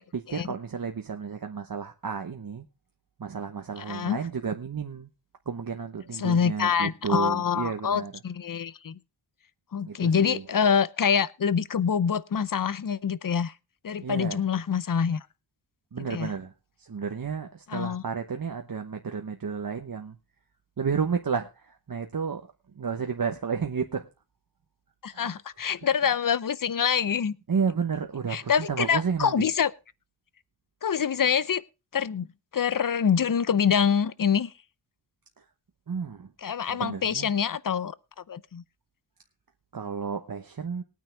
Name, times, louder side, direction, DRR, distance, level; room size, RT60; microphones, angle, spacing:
voice 1, 0.1-2.7 3.2-5.1 5.5-8.1 9.8-10.4 14.0-14.4 15.9-16.5 16.8-20.2 20.8-22.5 22.7-24.1 25.1-25.4 27.5-29.5 35.4-35.5 35.9-36.3 36.7-37.3 39.7-40.8, right 6 dB, 45° right, 1.0 m, -32 dB
voice 2, 3.8-4.2 6.2-9.0 9.7-13.5 13.8-15.3 16.1-16.3 17.7-18.0 25.0-27.4 28.3-29.7 30.8-31.6 31.9-32.3 32.5-34.5 36.4-37.9 38.3-38.6, left 7 dB, 45° left, 0.7 m, -25 dB
20.0 x 9.3 x 3.3 m
wide cardioid pair, 80°, 46 cm